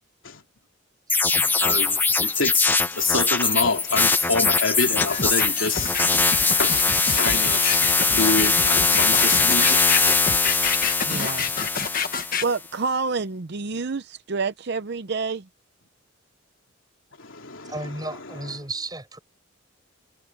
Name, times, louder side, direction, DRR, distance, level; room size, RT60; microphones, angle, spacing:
sound 1, 1.1-12.5, left 4 dB, 10° left, 0.6 m, -21 dB
voice 1, 1.6-5.9 6.6-9.7 17.2-17.8, left 3 dB, 65° left, 3.3 m, -27 dB
sound 2, 5.0-12.5, left 6 dB, 45° left, 1.5 m, -28 dB
voice 2, 11.1-11.5 12.4-15.5, right 4 dB, 50° right, 0.7 m, -28 dB
voice 3, 17.7-19.2, right 2 dB, 20° right, 7.8 m, -34 dB
head